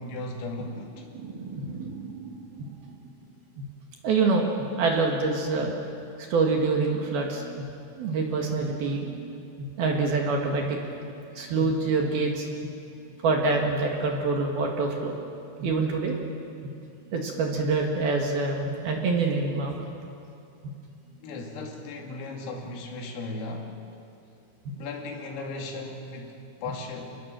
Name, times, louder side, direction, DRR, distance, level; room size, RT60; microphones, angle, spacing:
voice 1, 0.0-1.1 21.2-23.9 24.7-27.2, left 2 dB, 85° left, 1 dB, 5.2 m, -36 dB
voice 2, 1.1-3.0 3.6-3.7 4.0-4.5 4.8-5.7 6.3-7.7 8.0-10.8 11.4-12.5 13.2-15.1 15.6-16.1 16.6-16.7 17.1-19.9 20.6-20.7 24.6-24.7, right 3 dB, 60° right, 1 dB, 3.3 m, -26 dB
28.5 x 20.0 x 7.7 m, 2.5 s
omnidirectional pair, 5.9 m